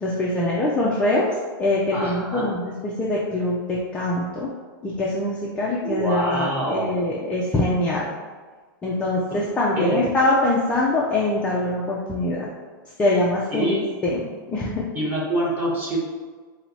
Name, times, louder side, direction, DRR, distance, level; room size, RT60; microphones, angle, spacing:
voice 1, 0.0-1.3 1.6-4.5 4.8-8.1 8.8-12.5 13.0-13.7 14.0-14.2 14.5-14.9, left 2 dB, 10° left, -5 dB, 0.3 m, -23 dB
voice 2, 1.9-2.5 5.8-7.1 9.8-10.2 13.5-13.9 14.9-16.0, right 1 dB, 15° right, -6 dB, 1.0 m, -25 dB
4.4 x 2.1 x 3.9 m, 1.4 s
supercardioid pair, 155°, 12 cm